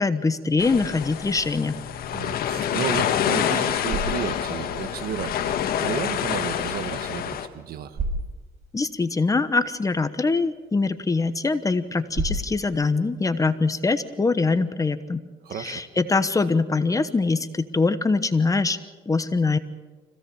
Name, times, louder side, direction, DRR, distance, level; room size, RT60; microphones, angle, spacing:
voice 1, 0.0-1.8 8.7-15.2 15.6-18.8 19.1-19.6, left 3 dB, 20° left, 12 dB, 1.1 m, -23 dB
sound 1, 0.6-7.5, left 9 dB, 65° left, 1.5 m, -27 dB
voice 2, 2.1-8.0 15.4-15.8, right 8 dB, 65° right, 10 dB, 1.6 m, -32 dB
sound 2, 3.5-14.6, right 2 dB, 40° right, 5.6 m, -37 dB
25.5 x 16.5 x 7.1 m, 1.3 s
cardioid pair, 110°, 17 cm